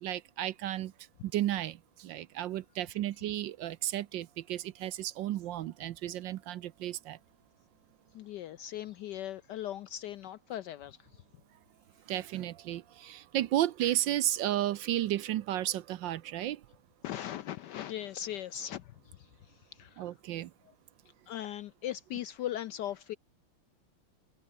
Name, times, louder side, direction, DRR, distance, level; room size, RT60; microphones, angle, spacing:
voice 1, 0.0-0.9 1.2-7.2 12.1-16.6 20.0-20.5, right 13 dB, 70° right, 1.3 m, -33 dB
voice 2, 8.1-11.2 17.0-20.1 21.3-23.2, left 11 dB, 75° left, 1.0 m, -39 dB
omnidirectional pair, 2.3 m